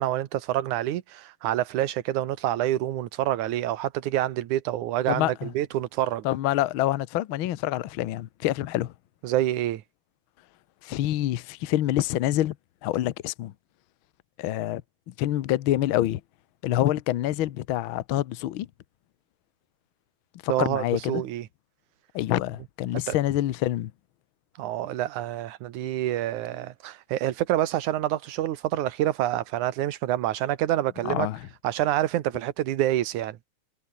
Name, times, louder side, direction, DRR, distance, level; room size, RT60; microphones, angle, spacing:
voice 1, 0.0-6.2 9.2-9.8 20.5-21.5 23.1-23.2 24.6-31.3 31.6-33.4, right 13 dB, 75° right, 2.6 m, -27 dB
voice 2, 5.1-5.5 6.2-8.9 10.8-12.5 12.8-13.5 14.4-14.8 15.1-16.2 16.6-18.7 20.4-21.2 22.1-23.9 31.0-31.5, left 14 dB, 85° left, 1.1 m, -26 dB
omnidirectional pair, 3.6 m